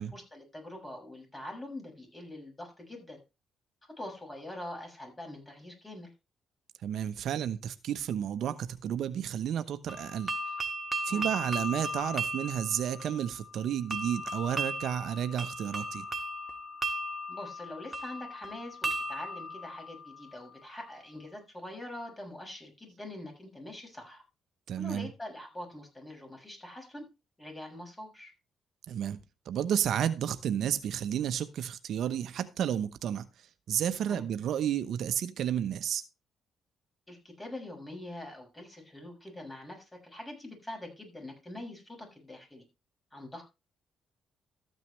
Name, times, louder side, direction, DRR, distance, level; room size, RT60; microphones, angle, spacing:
voice 1, 0.0-3.2 3.8-6.1 11.1-11.3 17.3-24.2 24.8-27.0 27.4-28.3 34.1-34.3 37.1-42.6 43.1-43.4, left 1 dB, 15° left, 7.0 m, -44 dB
voice 2, 6.8-10.3 11.0-16.1 24.7-25.1 28.9-29.2 29.5-33.3 33.7-36.0, right 9 dB, 70° right, 0.9 m, -31 dB
sound 1, 9.9-20.7, right 1 dB, 20° right, 1.9 m, -36 dB
13.5 x 9.2 x 3.3 m
cardioid pair, 90°, 0 cm